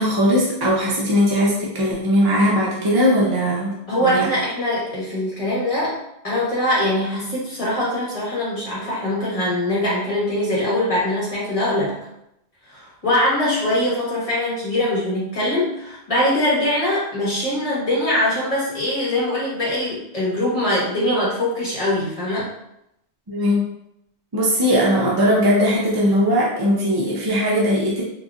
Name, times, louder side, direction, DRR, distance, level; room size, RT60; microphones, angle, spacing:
voice 1, 0.0-4.3 23.3-23.6 24.3-28.0, equal, 30° right, -5 dB, 0.4 m, -19 dB
voice 2, 3.9-5.9 6.2-12.0 12.7-22.5, left 1 dB, 30° left, -7 dB, 1.3 m, -22 dB
3.8 x 2.7 x 2.4 m, 0.81 s
omnidirectional pair, 1.2 m